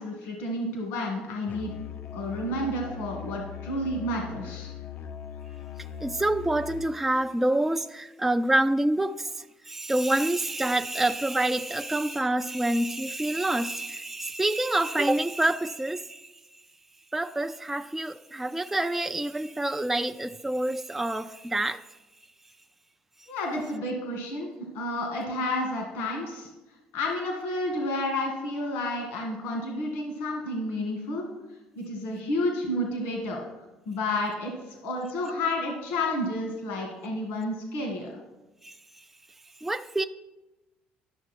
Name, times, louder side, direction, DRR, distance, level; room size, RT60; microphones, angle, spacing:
voice 1, 0.0-1.7 2.1-4.7 23.3-24.5 24.7-26.5 26.9-31.3 31.8-33.4 33.9-38.1, left 1 dB, 85° left, 2.0 m, -30 dB
Musical instrument, 1.5-7.0, left 9 dB, 60° left, 0.5 m, -40 dB
voice 2, 6.0-16.3 17.1-21.8 38.6-39.0 39.6-40.0, right 1 dB, 5° right, 0.3 m, -27 dB
11.5 x 6.5 x 4.4 m
cardioid pair, 90°, 3 cm